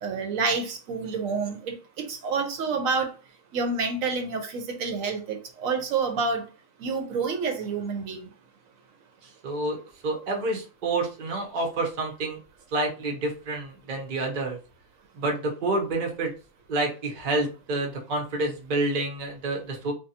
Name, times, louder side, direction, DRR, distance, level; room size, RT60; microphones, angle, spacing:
voice 1, 0.0-3.1 3.5-6.4 6.8-8.2, right 4 dB, 85° right, 5 dB, 1.1 m, -28 dB
voice 2, 9.2-9.8 10.0-12.4 12.7-14.6 15.1-16.3 16.7-19.9, right 2 dB, 45° right, 1 dB, 0.7 m, -28 dB
2.7 x 2.3 x 2.7 m, 0.35 s
omnidirectional pair, 1.4 m